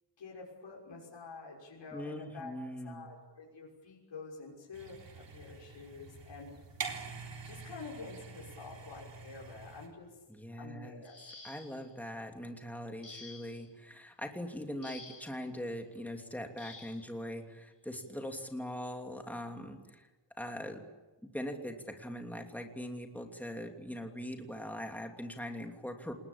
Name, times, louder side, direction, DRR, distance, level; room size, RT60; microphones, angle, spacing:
voice 1, 0.2-2.5 2.8-6.5 7.4-10.2 10.6-11.2, left 4 dB, 80° left, -3 dB, 6.2 m, -48 dB
voice 2, 1.9-3.1 10.3-11.0 11.4-20.1 20.4-20.8 21.2-26.1, equal, 5° left, 3 dB, 2.9 m, -41 dB
sound 1, 4.7-9.9, right 5 dB, 75° right, 3.9 m, -45 dB
sound 2, 11.0-11.9 13.0-13.7 14.8-15.4 16.6-17.1 18.3-18.4 18.9-19.1, left 3 dB, 35° left, 4.3 m, -51 dB
28.0 x 20.5 x 8.7 m, 1.1 s
wide cardioid pair, 125°, 43 cm